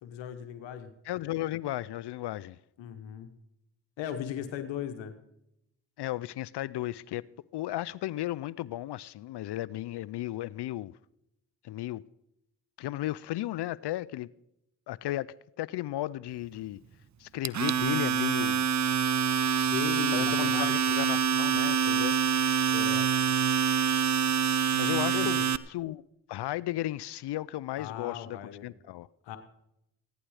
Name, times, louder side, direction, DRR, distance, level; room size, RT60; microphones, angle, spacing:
voice 1, 0.0-0.9 2.8-3.3 4.0-5.1 19.7-20.7 22.7-23.1 25.1-25.5 27.8-28.7 29.2-29.4, left 9 dB, 90° left, 1.1 m, -37 dB
voice 2, 1.0-2.6 6.0-7.2 7.5-10.9 11.6-12.0 12.8-14.3 14.9-16.8 17.2-18.7 20.1-22.6 24.7-25.4 25.7-26.0 26.3-29.1, left 15 dB, 65° left, 0.5 m, -35 dB
Domestic sounds home sounds, 17.4-25.6, right 7 dB, 40° right, 0.7 m, -26 dB
16.0 x 11.5 x 4.9 m
supercardioid pair, 40°, 43 cm